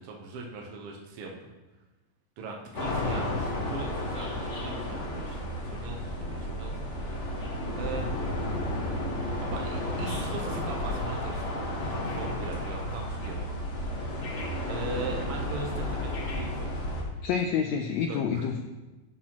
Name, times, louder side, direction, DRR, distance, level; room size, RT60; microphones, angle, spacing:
voice 1, 0.0-1.5 2.4-8.2 9.4-13.4 14.7-17.0 18.1-18.5, right 3 dB, 70° right, 0 dB, 1.4 m, -40 dB
sound 1, 2.7-17.0, left 1 dB, 65° left, 0.7 m, -32 dB
voice 2, 17.2-18.6, left 7 dB, 90° left, 4 dB, 1.5 m, -28 dB
12.0 x 6.1 x 3.0 m, 1.1 s
omnidirectional pair, 3.6 m